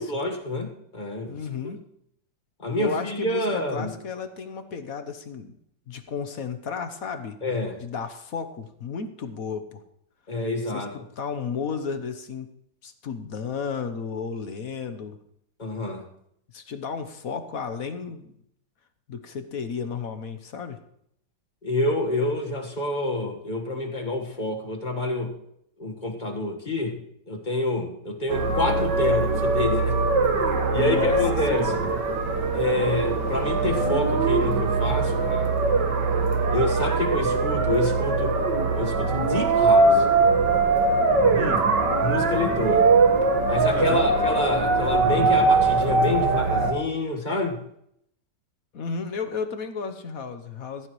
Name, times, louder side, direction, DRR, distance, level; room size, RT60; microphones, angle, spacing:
voice 1, 0.0-1.4 1.6-1.7 2.6-3.9 7.4-7.8 10.3-10.9 15.6-16.0 21.6-25.3 25.8-27.0 27.3-30.0 30.7-31.7 32.5-35.6 36.5-38.4 38.7-40.0 42.0-42.9 43.4-47.6, left 2 dB, 25° left, 4 dB, 1.7 m, -28 dB
voice 2, 1.3-1.8 2.7-5.5 5.9-7.4 7.8-9.8 10.7-12.5 12.8-15.2 16.5-18.3 19.1-20.8 30.7-31.2 31.5-31.9 41.4-41.7 43.7-44.1 48.7-50.9, left 6 dB, 55° left, 8 dB, 1.3 m, -33 dB
sound 1, 28.3-46.7, right 3 dB, 80° right, 2.1 m, -22 dB
15.5 x 15.0 x 3.2 m, 0.73 s
omnidirectional pair, 1.9 m